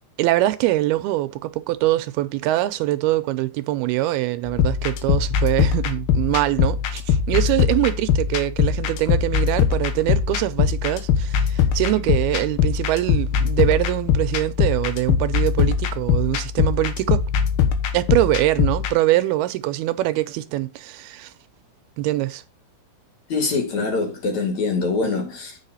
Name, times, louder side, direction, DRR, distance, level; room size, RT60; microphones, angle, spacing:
voice 1, 0.2-17.2 17.9-21.3 22.0-22.4, right 16 dB, 80° right, 2.6 m, -23 dB
sound 1, 4.5-18.9, left 7 dB, 85° left, 3.2 m, -21 dB
voice 2, 23.3-25.6, left 4 dB, 50° left, 3.1 m, -24 dB
8.8 x 5.7 x 5.5 m
omnidirectional pair, 4.5 m